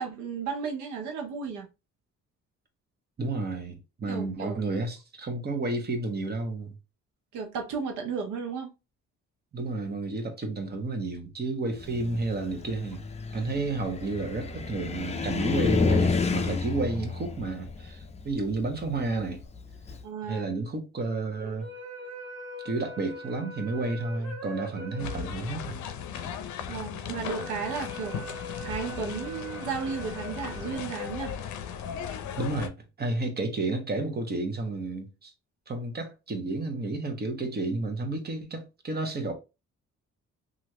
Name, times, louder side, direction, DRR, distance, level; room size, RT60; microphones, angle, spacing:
voice 1, 0.0-1.7 4.1-4.6 7.3-8.7 20.0-20.5 26.7-28.2 28.6-31.3, right 5 dB, 90° right, 0.8 m, -34 dB
voice 2, 3.2-6.7 9.5-13.0 13.3-19.4 20.3-21.7 22.6-25.8 32.4-32.7 33.0-35.3 35.7-39.3, right 3 dB, 30° right, 1.0 m, -31 dB
Car, 11.8-20.0, left 4 dB, 20° left, 0.5 m, -30 dB
sound 1, 21.4-31.8, right 2 dB, 60° right, 1.3 m, -43 dB
sound 2, 25.0-32.7, left 8 dB, 70° left, 0.6 m, -37 dB
3.0 x 2.5 x 2.9 m
cardioid pair, 90°, 30 cm